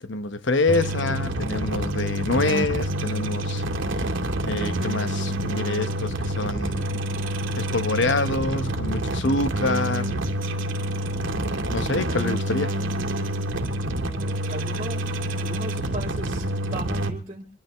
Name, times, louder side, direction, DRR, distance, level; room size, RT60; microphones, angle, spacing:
voice 1, 0.0-3.6 4.5-7.0 7.6-10.2 11.7-12.7, left 3 dB, 60° left, 0.9 m, -26 dB
sound 1, 0.7-17.1, right 1 dB, 70° right, 2.4 m, -27 dB
voice 2, 14.0-15.1 15.3-17.5, right 2 dB, 30° right, 2.1 m, -37 dB
26.0 x 12.5 x 3.5 m
head